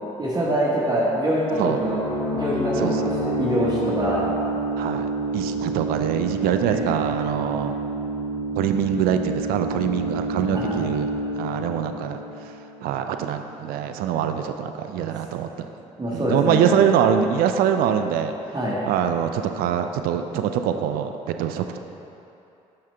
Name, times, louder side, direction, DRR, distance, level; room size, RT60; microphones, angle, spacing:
voice 1, 0.0-2.0 2.3-4.3 6.7-7.0 10.5-10.9 14.9-15.1 16.0-16.6 18.5-18.8, equal, 25° right, -6 dB, 1.2 m, -25 dB
sound 1, 1.5-13.0, right 2 dB, 85° left, 1.1 m, -28 dB
voice 2, 4.8-7.8 8.6-11.1 11.4-12.2 12.8-15.7 16.1-18.3 18.9-21.8, right 8 dB, 70° right, 7 dB, 0.4 m, -24 dB
6.5 x 5.7 x 3.3 m, 2.7 s
hypercardioid pair, 55°, 16 cm